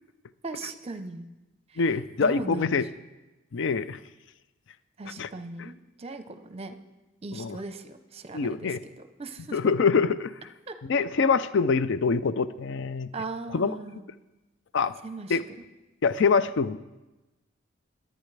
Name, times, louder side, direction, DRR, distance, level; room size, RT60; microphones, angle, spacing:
voice 1, 0.4-1.3 1.7-1.8 2.2-2.8 5.0-6.8 7.2-9.6 10.7-10.8 13.1-14.0 15.0-15.4, right 3 dB, 30° right, 9 dB, 0.7 m, -38 dB
voice 2, 1.8-2.9 3.5-4.0 5.2-5.3 5.6-5.7 7.3-7.6 8.3-8.8 9.5-10.3 10.8-13.1 13.5-13.7 14.7-14.9 15.3-15.4 16.0-16.8, left 5 dB, 65° left, 15 dB, 0.5 m, -25 dB
22.5 x 9.1 x 3.3 m, 1.1 s
head